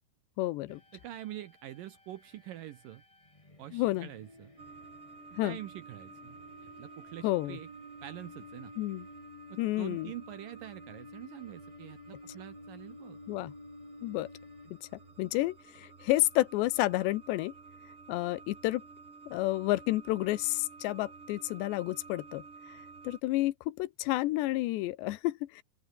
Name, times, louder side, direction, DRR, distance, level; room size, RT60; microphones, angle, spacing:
voice 1, 0.4-0.8 3.7-4.1 5.4-5.6 7.2-7.6 8.8-9.1 9.6-10.1 13.3-13.5 14.0-14.3 14.8-14.9 15.2-17.5 18.1-18.8 19.3-25.6, left 17 dB, 85° left, 3.1 m, -30 dB
sound 1, 0.7-15.2, left 2 dB, 15° left, 1.2 m, -52 dB
voice 2, 0.9-3.0 3.6-4.5 5.4-7.7 8.0-8.7 9.5-13.2, right 13 dB, 75° right, 2.2 m, -45 dB
sound 2, 4.6-23.2, right 4 dB, 35° right, 1.0 m, -52 dB
open air
omnidirectional pair, 5.0 m